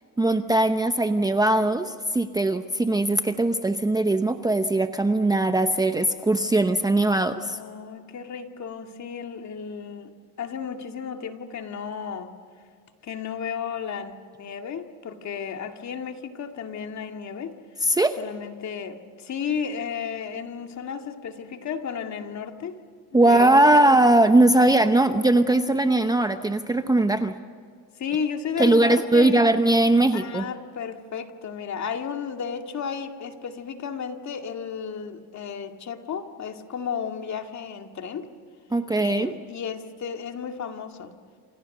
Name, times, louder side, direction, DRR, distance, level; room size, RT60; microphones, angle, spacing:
voice 1, 0.2-7.6 17.8-18.2 23.1-27.3 28.6-30.4 38.7-39.3, right 2 dB, 10° right, 8 dB, 0.8 m, -20 dB
voice 2, 7.5-12.3 13.0-17.5 18.2-22.8 23.1-23.6 28.0-29.5 30.1-38.3 39.0-41.1, left 7 dB, 40° left, 5 dB, 2.2 m, -33 dB
28.5 x 27.5 x 6.7 m, 2.2 s
cardioid pair, 125°, 43 cm